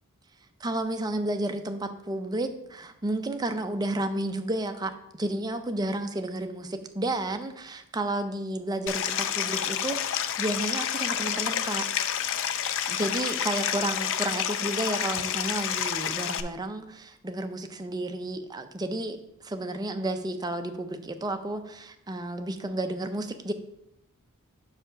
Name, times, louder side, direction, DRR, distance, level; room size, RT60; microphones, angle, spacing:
voice 1, 0.6-11.9 12.9-23.5, right 1 dB, 20° right, 7 dB, 0.5 m, -32 dB
Stream, 8.9-16.4, left 9 dB, 60° left, 0.4 m, -29 dB
6.0 x 4.9 x 4.9 m, 0.82 s
head